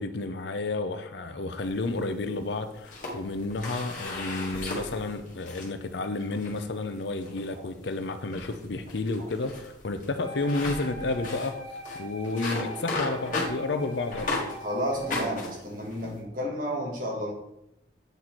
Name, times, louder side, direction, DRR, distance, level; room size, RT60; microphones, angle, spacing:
voice 1, 0.0-11.6 11.9-14.5, left 2 dB, 65° left, 9 dB, 0.6 m, -31 dB
sound 1, 1.6-2.4 2.8-5.7 6.2-6.6 7.2-7.5 7.8-8.0 8.3-14.6 14.9-16.2, left 2 dB, 45° left, 1.8 m, -35 dB
Wind instrument woodwind instrument, 10.2-15.3, left 1 dB, 65° right, 1.9 m, -42 dB
voice 2, 14.6-17.3, equal, 45° right, 0 dB, 1.6 m, -32 dB
8.0 x 4.2 x 4.5 m, 0.85 s
head